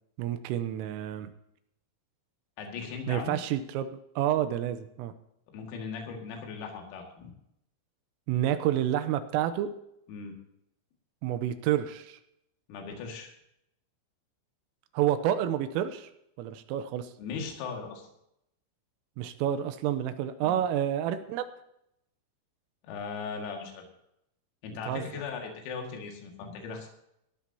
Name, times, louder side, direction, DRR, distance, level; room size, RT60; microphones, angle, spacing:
voice 1, 0.2-1.3 3.1-5.1 8.3-9.7 11.2-12.2 14.9-16.1 16.4-17.1 19.2-21.5 24.9-25.0, right 11 dB, 85° right, 11 dB, 3.4 m, -29 dB
voice 2, 2.6-3.4 5.5-7.3 10.1-10.3 12.7-13.3 17.2-18.1 20.4-20.5 22.8-23.9 24.6-26.9, left 5 dB, 90° left, 2 dB, 4.8 m, -38 dB
18.5 x 13.0 x 2.8 m, 0.78 s
omnidirectional pair, 5.9 m